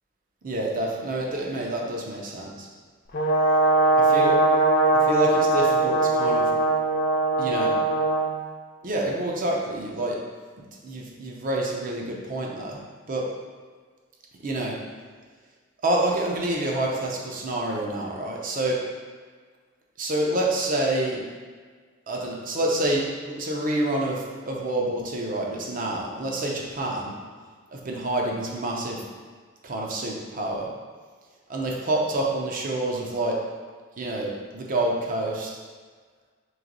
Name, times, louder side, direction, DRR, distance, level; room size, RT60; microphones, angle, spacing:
voice 1, 0.4-2.7 3.9-4.4 4.9-6.5 7.4-7.8 8.8-10.2 10.8-12.8 13.1-13.3 14.4-14.8 15.8-18.8 20.0-21.2 22.1-27.1 27.7-29.0 29.6-30.7 31.5-33.4 34.0-35.5, right 1 dB, 45° right, -1 dB, 0.6 m, -27 dB
Brass instrument, 3.1-8.3, right 2 dB, 45° left, 0.5 m, -21 dB
3.1 x 3.0 x 3.9 m, 1.6 s
head